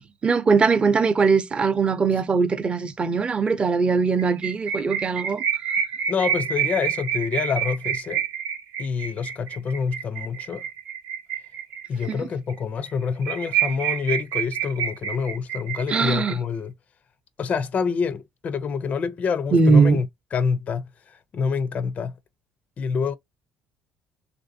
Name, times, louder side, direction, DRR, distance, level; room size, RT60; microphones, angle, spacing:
voice 1, 0.2-5.4 12.1-12.3 15.9-16.4 19.5-20.0, right 4 dB, 25° right, 0.6 m, -20 dB
sound 1, 4.2-12.1 12.5-12.6 12.9-13.0 13.2-16.3, right 9 dB, 70° right, 0.7 m, -28 dB
voice 2, 6.1-8.2 8.8-10.6 11.9-16.7 17.4-22.1 22.8-23.2, left 6 dB, 35° left, 0.4 m, -27 dB
3.4 x 2.5 x 2.5 m
cardioid pair, 130°, 4 cm